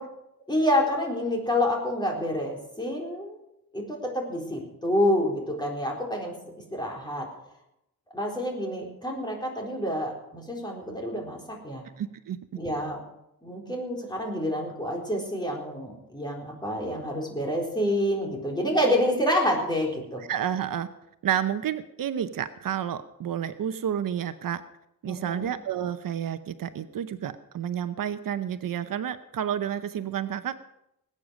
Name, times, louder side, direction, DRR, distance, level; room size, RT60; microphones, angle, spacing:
voice 1, 0.5-3.4 3.7-6.3 6.7-7.3 8.1-11.8 12.6-13.0 13.4-20.2 25.1-25.5, left 1 dB, 10° left, -1 dB, 3.9 m, -28 dB
voice 2, 12.0-12.4 20.3-20.9 21.2-24.6 25.0-30.5, right 9 dB, 70° right, 11 dB, 0.8 m, -30 dB
20.0 x 8.8 x 6.3 m, 0.83 s
wide cardioid pair, 135°, 35 cm